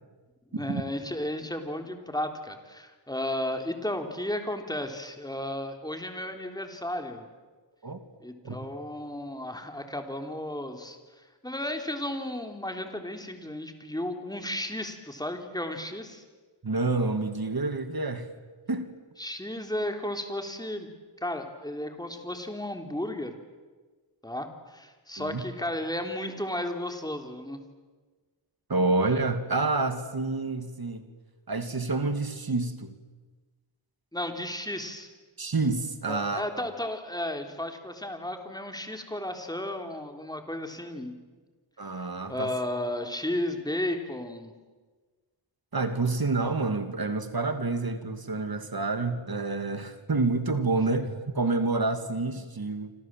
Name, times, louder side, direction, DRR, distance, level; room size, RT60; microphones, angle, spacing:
voice 1, 0.5-7.3 8.2-16.2 19.2-20.9 21.2-23.3 24.2-27.6 34.1-35.1 36.1-41.1 42.0-44.5, left 1 dB, 10° left, 5 dB, 3.4 m, -34 dB
voice 2, 16.6-18.3 18.7-18.9 25.2-25.4 28.7-31.1 31.5-32.9 35.4-36.7 41.8-42.5 45.7-52.9, right 3 dB, 50° right, 8 dB, 2.3 m, -28 dB
28.5 x 26.0 x 7.6 m, 1.4 s
wide cardioid pair, 90°, 48 cm